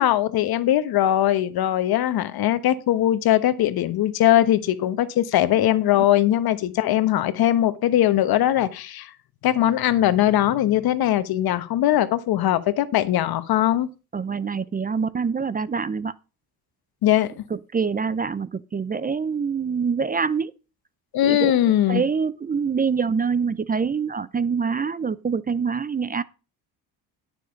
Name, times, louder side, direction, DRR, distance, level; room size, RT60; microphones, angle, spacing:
voice 1, 0.0-9.1 9.4-13.9 17.0-17.4 21.1-22.0, left 12 dB, 70° left, 1.2 m, -20 dB
voice 2, 14.1-16.1 17.5-20.5 21.2-21.6 21.9-26.2, right 5 dB, 25° right, 0.5 m, -25 dB
11.5 x 6.6 x 5.2 m
cardioid pair, 100°, 38 cm